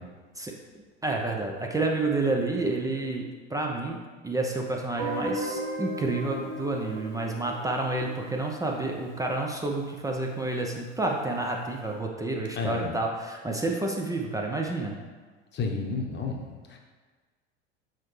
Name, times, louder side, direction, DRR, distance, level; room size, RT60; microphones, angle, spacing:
voice 1, 1.0-3.2 3.5-14.9, right 2 dB, 10° right, 0 dB, 0.5 m, -29 dB
Guitar, 5.0-9.9, right 1 dB, 55° right, 1.8 m, -36 dB
voice 2, 12.6-12.9 15.5-16.4, left 4 dB, 30° left, 1 dB, 1.0 m, -30 dB
7.4 x 4.3 x 3.2 m, 1.4 s
figure-of-eight pair, 80°, 37 cm